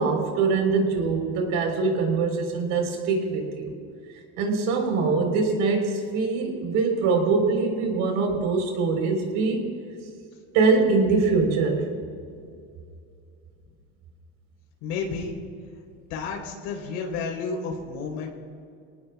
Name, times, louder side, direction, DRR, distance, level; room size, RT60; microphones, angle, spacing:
voice 1, 0.0-3.8 4.4-9.7 10.5-11.9, right 4 dB, 70° right, 2 dB, 4.1 m, -23 dB
voice 2, 14.8-15.4 16.1-18.3, left 5 dB, 90° left, 0 dB, 3.8 m, -31 dB
26.0 x 18.5 x 2.4 m, 2.4 s
cardioid pair, 130°, 32 cm